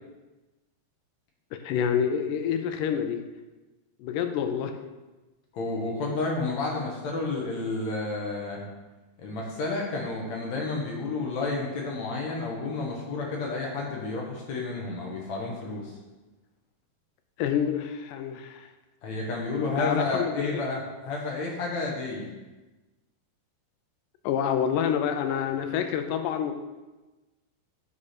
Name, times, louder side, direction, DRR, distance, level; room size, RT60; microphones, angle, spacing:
voice 1, 1.6-3.2 4.0-4.7 17.4-18.7 19.8-20.7 24.2-26.5, left 8 dB, 90° left, 7 dB, 2.2 m, -27 dB
voice 2, 5.5-8.6 9.2-15.9 19.0-22.3, left 3 dB, 65° left, -2 dB, 2.4 m, -31 dB
9.8 x 4.9 x 4.3 m, 1.1 s
omnidirectional pair, 3.7 m